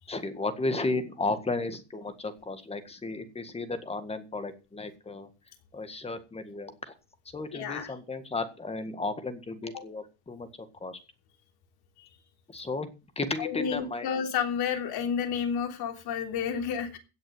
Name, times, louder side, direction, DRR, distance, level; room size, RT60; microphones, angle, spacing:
voice 1, 0.1-5.3 5.7-6.9 7.3-11.0 12.5-12.9 13.2-14.1, left 3 dB, 15° left, 11 dB, 1.7 m, -34 dB
voice 2, 7.5-7.9 9.7-9.8 13.4-17.0, left 7 dB, 55° left, 6 dB, 3.4 m, -31 dB
17.0 x 6.5 x 7.8 m, 0.32 s
cardioid pair, 160°, 45 cm